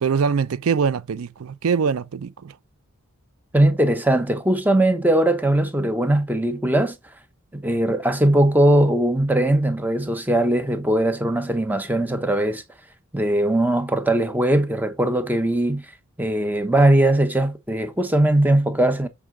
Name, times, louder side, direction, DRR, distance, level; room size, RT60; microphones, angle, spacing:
voice 1, 0.0-2.5, right 6 dB, 90° right, 0.5 m, -23 dB
voice 2, 3.5-7.0 7.5-12.6 13.1-15.8 16.2-19.1, right 1 dB, 10° right, 0.7 m, -20 dB
9.2 x 4.8 x 3.7 m
head